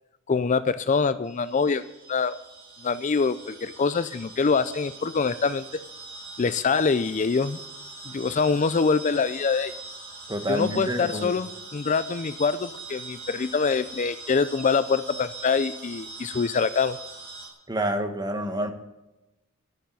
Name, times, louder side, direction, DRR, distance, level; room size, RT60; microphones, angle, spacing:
voice 1, 0.3-1.8 2.1-2.4 2.8-5.6 6.4-7.6 8.1-9.7 10.5-17.0, left 5 dB, 35° left, 14 dB, 0.4 m, -24 dB
sound 1, 1.2-17.5, right 3 dB, 45° right, 3.6 m, -42 dB
voice 2, 10.3-11.4 17.7-18.7, equal, 20° right, 6 dB, 1.5 m, -28 dB
13.0 x 7.0 x 8.6 m, 0.97 s
head